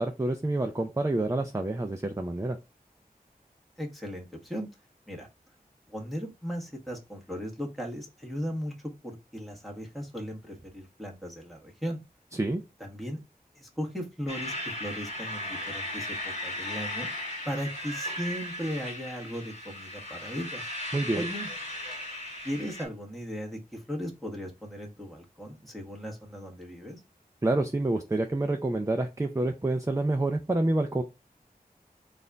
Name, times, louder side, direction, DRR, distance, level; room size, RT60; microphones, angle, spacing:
voice 1, 0.0-2.6 12.4-12.6 20.9-21.3 27.4-31.0, right 2 dB, 20° right, 5 dB, 0.5 m, -28 dB
voice 2, 3.8-4.7 5.1-5.3 5.9-8.7 9.0-12.0 12.8-13.2 13.5-17.1 17.4-20.7 21.1-21.5 22.4-27.0, equal, ahead, -1 dB, 1.4 m, -37 dB
sound 1, 14.3-22.8, left 1 dB, 45° left, 1.7 m, -36 dB
4.1 x 2.6 x 3.4 m, 0.26 s
wide cardioid pair, 55°, 16 cm